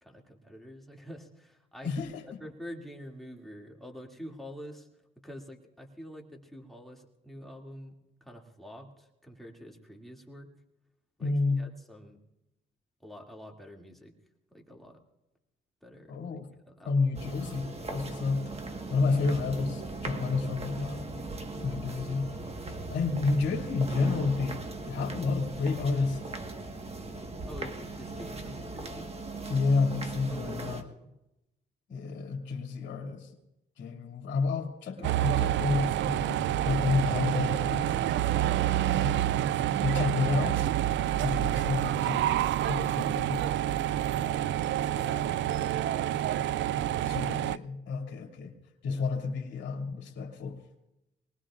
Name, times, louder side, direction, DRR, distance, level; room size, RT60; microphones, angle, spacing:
voice 1, 0.0-1.9 2.4-4.9 5.2-7.9 8.2-10.5 11.2-12.2 13.0-14.1 14.5-15.0 15.8-16.2 16.7-17.1 17.5-17.6 27.5-29.1 30.3-31.1 35.0-35.1 41.9-42.3 43.8-47.3 48.9-49.0, equal, ahead, 0 dB, 2.5 m, -47 dB
voice 2, 1.8-2.2 11.2-11.6 16.1-16.4 16.8-18.5 18.9-21.2 21.6-22.3 22.9-26.2 29.5-30.9 31.9-33.3 33.8-38.0 38.9-39.3 39.8-40.6 41.2-43.4 47.1-48.5 48.8-50.6, left 4 dB, 65° left, 1 dB, 2.4 m, -30 dB
sound 1, 17.1-30.8, right 3 dB, 30° right, 1.5 m, -39 dB
sound 2, 35.0-47.6, right 12 dB, 70° right, 0.4 m, -28 dB
23.0 x 19.5 x 2.5 m, 0.93 s
cardioid pair, 90°, 20 cm